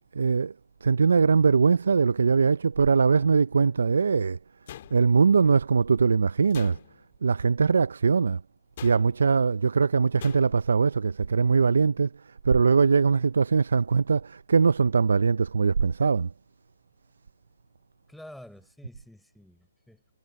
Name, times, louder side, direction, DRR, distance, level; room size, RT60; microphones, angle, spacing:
voice 1, 0.1-0.5 0.8-4.4 4.9-6.8 7.2-8.4 8.8-16.3, right 5 dB, 75° right, 0.6 m, -22 dB
sound 1, 4.7-5.4 6.5-7.2 8.8-9.3 10.2-10.7, left 11 dB, 45° left, 2.3 m, -45 dB
voice 2, 18.1-20.1, left 1 dB, ahead, 5.2 m, -49 dB
hypercardioid pair, 150°, 0 cm